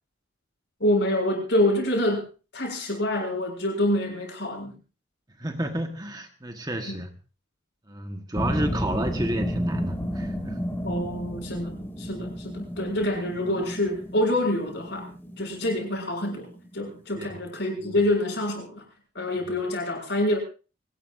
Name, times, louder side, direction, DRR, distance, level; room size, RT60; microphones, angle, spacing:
voice 1, 0.8-2.3 2.5-4.7 6.9-7.0 10.8-15.1 15.4-16.5 16.7-18.8 19.1-20.4, left 1 dB, 55° left, 2 dB, 6.9 m, -26 dB
voice 2, 5.4-7.1 7.9-10.6 17.2-17.4 17.8-17.9, right 1 dB, 20° right, 5 dB, 1.4 m, -31 dB
sound 1, 8.3-17.3, equal, 10° left, 1.8 m, -33 dB
24.5 x 18.5 x 2.6 m, 0.35 s
head